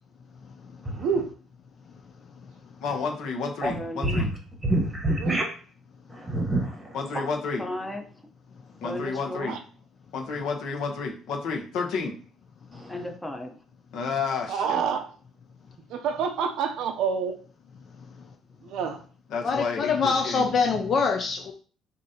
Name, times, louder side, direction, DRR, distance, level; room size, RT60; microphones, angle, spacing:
voice 1, 0.9-1.3 5.2-5.4 9.4-9.6 14.5-15.1 15.9-17.4 18.6-19.0, right 6 dB, 65° right, 6 dB, 0.5 m, -28 dB
voice 2, 2.8-4.3 6.9-7.7 8.8-9.6 10.1-12.2 13.9-14.8 19.3-20.5, left 4 dB, 65° left, 2 dB, 0.9 m, -31 dB
voice 3, 3.6-4.3 7.6-8.0 8.8-9.6 12.9-13.6, left 1 dB, 5° left, 3 dB, 0.7 m, -35 dB
voice 4, 4.6-5.4 6.1-7.0 12.7-12.9, right 1 dB, 10° right, 1 dB, 1.1 m, -26 dB
voice 5, 19.4-21.5, left 5 dB, 35° left, 5 dB, 0.4 m, -24 dB
6.7 x 2.6 x 2.8 m, 0.42 s
cardioid pair, 170°, 0 cm